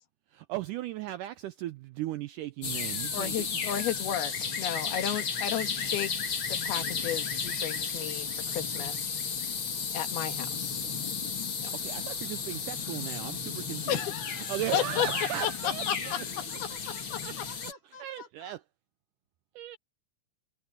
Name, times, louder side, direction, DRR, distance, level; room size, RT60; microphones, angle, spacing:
voice 1, 0.3-3.5 11.7-14.0 14.3-16.3 16.7-16.8 17.2-17.3 18.0-18.6 19.6-19.8, right 14 dB, 80° right, 1.8 m, -37 dB
sound 1, 2.6-17.7, left 6 dB, 40° left, 2.6 m, -33 dB
voice 2, 3.1-6.1 6.5-9.0 9.9-11.1 11.6-11.7 13.9-15.1 15.4-16.2 17.1-17.2, left 10 dB, 90° left, 3.6 m, -33 dB
voice 3, 14.7-18.5, left 5 dB, 55° left, 5.5 m, -49 dB
omnidirectional pair, 4.3 m